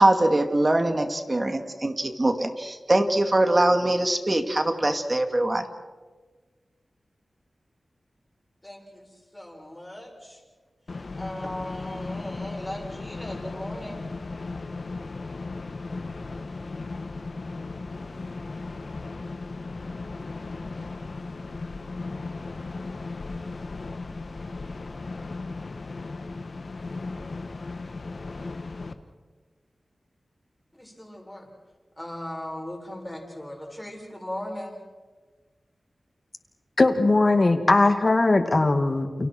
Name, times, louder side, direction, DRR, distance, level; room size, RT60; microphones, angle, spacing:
voice 1, 0.0-5.6, right 1 dB, 35° right, 6 dB, 2.4 m, -22 dB
voice 2, 8.6-10.4 11.2-14.0 30.7-31.5 32.0-34.8, left 1 dB, 15° left, 0 dB, 7.2 m, -38 dB
sound 1, 10.9-28.9, left 3 dB, 65° left, 1.5 m, -36 dB
voice 3, 36.8-39.3, left 2 dB, 45° left, 6 dB, 2.4 m, -20 dB
29.5 x 29.0 x 4.7 m, 1.4 s
wide cardioid pair, 60°, 0 cm